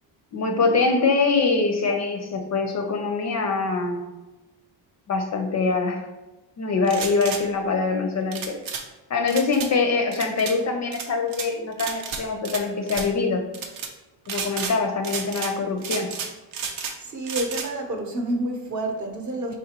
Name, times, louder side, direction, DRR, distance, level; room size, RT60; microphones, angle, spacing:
voice 1, 0.3-4.0 5.1-6.0 6.6-8.5 9.1-13.4 14.3-16.1, left 4 dB, 40° left, 3 dB, 0.4 m, -24 dB
sound 1, 6.8-7.4 8.3-8.8 9.3-9.7 10.1-10.6 10.9-11.5 11.8-12.6 12.9-13.1 13.5-13.9 14.3-14.8 15.0-15.5 15.8-17.0 17.2-17.7, right 6 dB, 90° right, 0.8 m, -32 dB
voice 2, 17.0-19.6, right 1 dB, 40° right, 2 dB, 0.7 m, -29 dB
4.9 x 3.8 x 2.8 m, 1.1 s
cardioid pair, 165°, 46 cm